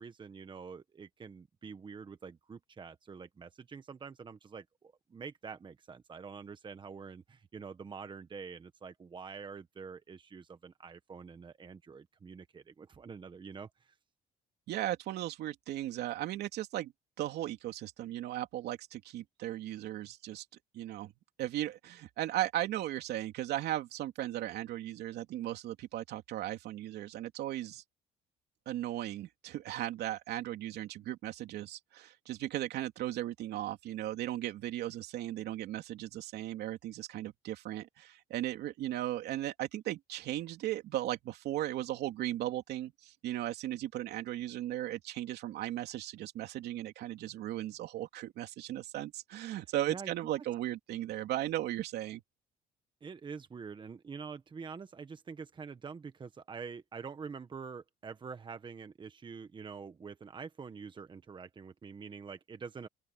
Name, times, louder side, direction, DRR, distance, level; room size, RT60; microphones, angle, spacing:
voice 1, 0.0-13.9 49.9-50.1 53.0-62.9, right 5 dB, 30° right, 1.3 m, -46 dB
voice 2, 14.7-16.9 17.2-20.4 20.7-21.1 21.4-27.8 28.7-52.2, right 13 dB, 75° right, 3.1 m, -37 dB
open air
cardioid pair, 110°, 17 cm